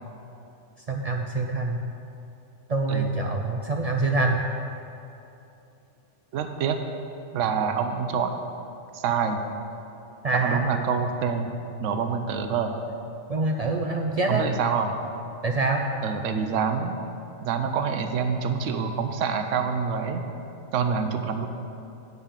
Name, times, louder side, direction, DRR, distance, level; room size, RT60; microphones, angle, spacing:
voice 1, 0.9-1.8 2.7-4.4 10.2-10.7 13.3-14.5 15.4-15.8, right 3 dB, 55° right, 1 dB, 0.4 m, -25 dB
voice 2, 6.3-6.8 7.3-8.3 8.9-9.4 10.3-11.5 11.8-12.7 14.3-14.9 16.0-17.0 17.4-20.2 20.7-21.5, right 6 dB, 85° right, 6 dB, 1.0 m, -26 dB
8.5 x 5.3 x 7.2 m, 2.8 s
omnidirectional pair, 1.2 m